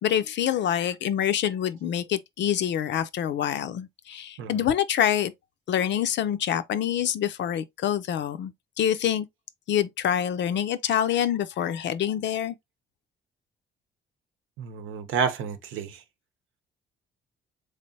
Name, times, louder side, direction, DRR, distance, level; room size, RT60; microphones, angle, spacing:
voice 1, 0.0-5.3 5.7-9.3 9.7-12.5, left 10 dB, 65° left, 0.5 m, -26 dB
voice 2, 14.6-16.0, right 6 dB, 85° right, 0.8 m, -30 dB
3.7 x 3.3 x 2.7 m
cardioid pair, 90°, 20 cm